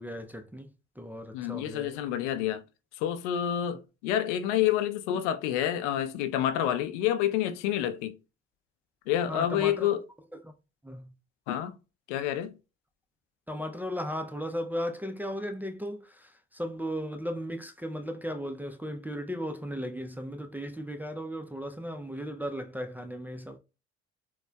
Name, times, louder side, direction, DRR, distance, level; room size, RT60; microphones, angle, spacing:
voice 1, 0.0-2.0 9.3-9.9 10.3-10.5 10.8-11.1 13.5-23.6, equal, 5° right, 0.4 m, -36 dB
voice 2, 1.3-2.6 2.9-8.2 9.1-10.0 11.5-11.8 12.1-12.6, left 11 dB, 75° left, 0.5 m, -28 dB
4.2 x 2.1 x 2.2 m
hypercardioid pair, 55°, 35 cm